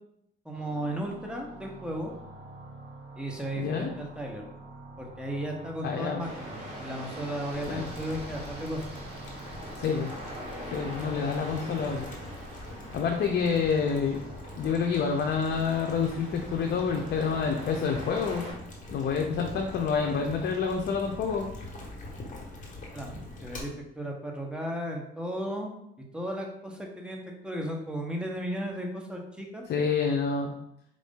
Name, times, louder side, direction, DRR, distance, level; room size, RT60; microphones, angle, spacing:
voice 1, 0.4-2.1 3.2-4.4 5.0-8.8 22.9-25.7 26.0-29.6, right 1 dB, 5° right, 0 dB, 0.9 m, -35 dB
sound 1, 0.5-20.3, right 2 dB, 55° right, 1.4 m, -49 dB
voice 2, 3.6-3.9 5.8-6.2 7.7-7.9 9.8-10.1 10.7-12.1 12.9-14.2 14.6-18.5 18.9-21.5 29.7-30.5, left 6 dB, 60° left, 2 dB, 0.5 m, -28 dB
sound 2, 6.2-18.5, equal, 35° right, 1.3 m, -43 dB
Boiling, 7.5-23.6, left 2 dB, 40° left, 1.3 m, -44 dB
4.7 x 2.6 x 3.6 m, 0.78 s
cardioid pair, 90°, 20 cm